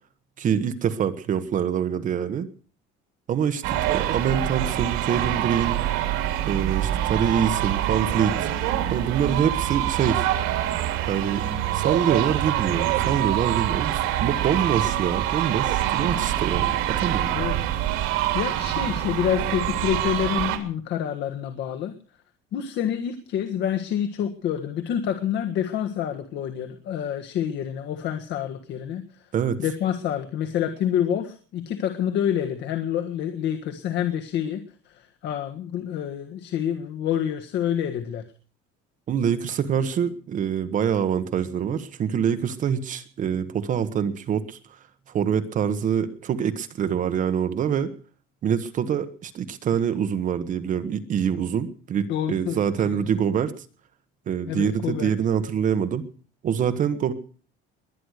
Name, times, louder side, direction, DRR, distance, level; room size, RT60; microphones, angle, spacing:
voice 1, 0.4-2.5 3.3-5.8 6.5-8.4 8.9-10.3 11.1-11.5 11.7-17.3 29.3-29.6 39.1-44.6 45.1-47.9 48.4-53.5 54.3-56.0 56.4-57.1, right 8 dB, 40° right, 10 dB, 1.4 m, -25 dB
sound 1, 3.6-20.6, right 12 dB, 80° right, 3.1 m, -25 dB
voice 2, 18.3-21.9 22.5-29.0 29.6-38.2 52.1-53.1 54.5-55.1, left 9 dB, 55° left, 5 dB, 1.6 m, -27 dB
22.0 x 10.0 x 6.6 m, 0.42 s
cardioid pair, 160°, 21 cm